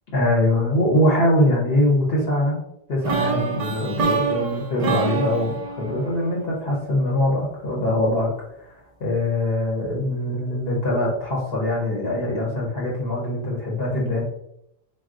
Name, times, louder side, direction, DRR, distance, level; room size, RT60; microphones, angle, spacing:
voice 1, 0.1-2.6 2.9-8.3 8.6-14.2, left 1 dB, 65° left, -3 dB, 1.0 m, -22 dB
sound 1, 3.0-7.0, right 5 dB, 55° right, 0.4 m, -26 dB
3.5 x 2.3 x 2.5 m, 0.77 s
omnidirectional pair, 1.1 m